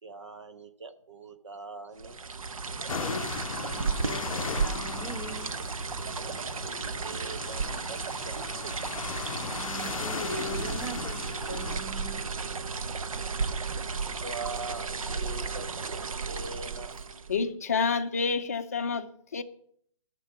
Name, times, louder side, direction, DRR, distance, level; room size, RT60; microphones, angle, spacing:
voice 1, 0.0-2.2 6.2-8.8 13.8-14.0 14.2-17.0, right 3 dB, 60° right, 1.1 m, -43 dB
sound 1, 2.0-17.4, right 4 dB, 85° right, 0.9 m, -34 dB
sound 2, 2.9-11.8, left 7 dB, 85° left, 0.5 m, -38 dB
voice 2, 2.9-5.5 9.4-12.9, right 1 dB, 20° right, 1.5 m, -41 dB
voice 3, 17.3-19.4, left 5 dB, 30° left, 0.6 m, -29 dB
13.5 x 6.6 x 7.1 m
hypercardioid pair, 180°, 17 cm